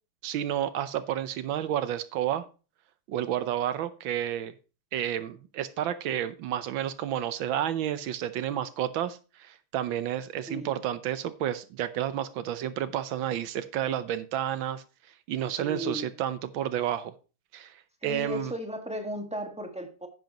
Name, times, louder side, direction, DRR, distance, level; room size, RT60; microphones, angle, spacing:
voice 1, 0.2-2.5 3.1-4.5 4.9-14.8 15.3-17.1 17.5-17.7 18.0-18.5, right 11 dB, 75° right, 1.5 m, -30 dB
voice 2, 15.6-16.1 18.0-20.1, equal, 5° right, 1.3 m, -35 dB
10.5 x 9.2 x 2.9 m
omnidirectional pair, 2.3 m